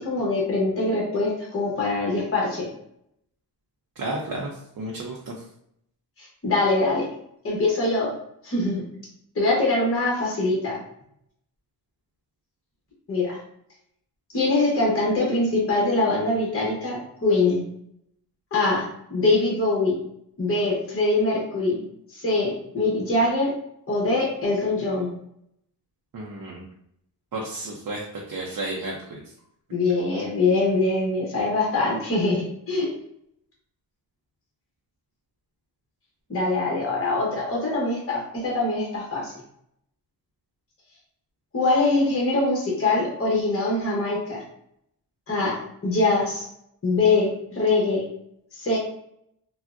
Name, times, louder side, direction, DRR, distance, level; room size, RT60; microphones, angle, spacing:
voice 1, 0.0-2.7 6.2-7.0 7.4-8.1 8.4-8.8 9.3-10.8 13.1-13.4 14.3-17.6 18.5-18.8 19.1-20.0 20.4-21.8 22.1-23.5 23.9-25.1 29.7-32.9 36.3-39.3 41.5-44.4 45.3-45.6 45.8-46.4 46.8-48.0 48.6-48.8, left 2 dB, 35° left, -4 dB, 0.9 m, -23 dB
voice 2, 4.0-5.4 26.1-26.6 27.3-29.2, right 2 dB, 55° right, -2 dB, 0.6 m, -32 dB
3.4 x 2.1 x 2.4 m, 0.72 s
cardioid pair, 90°, 41 cm